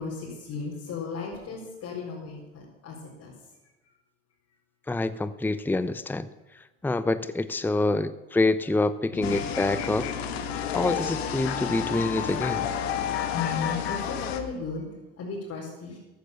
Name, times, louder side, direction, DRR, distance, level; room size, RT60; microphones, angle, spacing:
voice 1, 0.0-3.5 3.8-3.9 9.1-9.4 11.0-11.2 13.3-16.0, left 4 dB, 55° left, -4 dB, 4.3 m, -36 dB
voice 2, 4.9-6.3 6.8-10.1 10.7-12.7, left 2 dB, 5° left, 14 dB, 0.7 m, -26 dB
sound 1, 9.2-14.4, left 8 dB, 80° left, 1.5 m, -30 dB
14.0 x 11.5 x 6.9 m, 1.1 s
hypercardioid pair, 70°, 31 cm